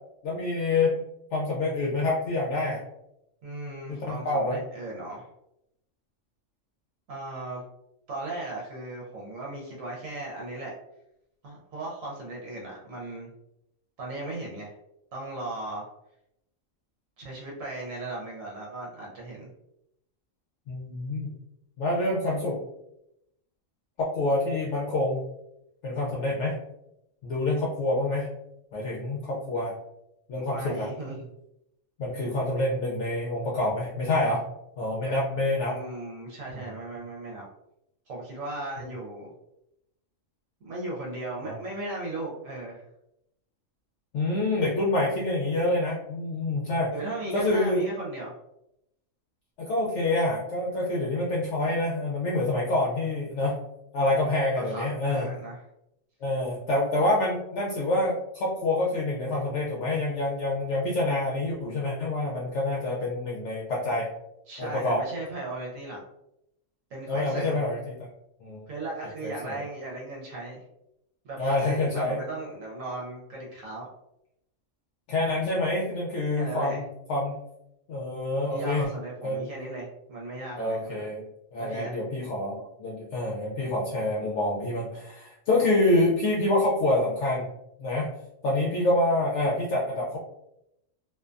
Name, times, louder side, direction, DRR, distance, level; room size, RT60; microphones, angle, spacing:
voice 1, 0.2-1.0 1.3-2.8 3.9-4.6 20.7-21.3 21.8-22.6 24.0-25.2 25.8-26.6 27.2-28.3 28.7-29.7 30.3-30.9 32.0-34.4 34.8-35.8 41.4-41.5 44.1-46.9 47.3-47.8 49.6-53.6 53.9-55.3 56.2-64.1 64.6-65.0 67.1-67.9 68.4-68.7 69.2-69.6 71.4-72.2 75.1-77.4 77.9-78.9 79.2-79.5 80.6-81.3 81.5-87.4 87.8-88.1 88.4-90.2, left 2 dB, 70° left, -4 dB, 0.8 m, -27 dB
voice 2, 3.4-5.3 7.1-7.6 8.1-10.7 11.4-13.3 14.0-14.7 15.1-15.8 17.2-19.5 30.4-31.3 35.0-35.2 35.6-37.5 38.1-39.3 40.6-42.8 46.9-48.3 54.6-55.6 64.5-66.0 66.9-67.6 68.7-70.6 71.2-73.9 76.4-76.8 78.5-81.1 81.6-82.0, right 2 dB, 80° right, -4 dB, 1.0 m, -37 dB
2.5 x 2.1 x 2.4 m, 0.83 s
omnidirectional pair, 1.4 m